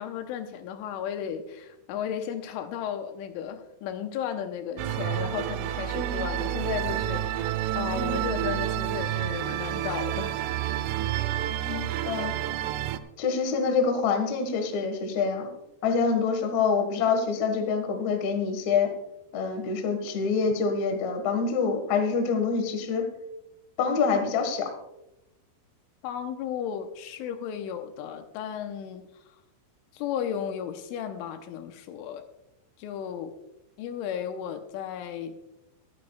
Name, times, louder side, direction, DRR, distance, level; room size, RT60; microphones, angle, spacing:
voice 1, 0.0-10.5 10.8-11.2 26.0-29.1 29.9-32.2 32.8-33.4 33.8-35.4, left 9 dB, 85° left, 7 dB, 3.2 m, -34 dB
sound 1, 4.8-13.0, right 12 dB, 90° right, 3.3 m, -29 dB
voice 2, 11.7-12.3 13.2-15.5 15.8-18.9 19.3-23.0 23.8-24.7, left 5 dB, 60° left, 5 dB, 1.9 m, -26 dB
23.0 x 9.6 x 2.3 m, 0.90 s
omnidirectional pair, 5.6 m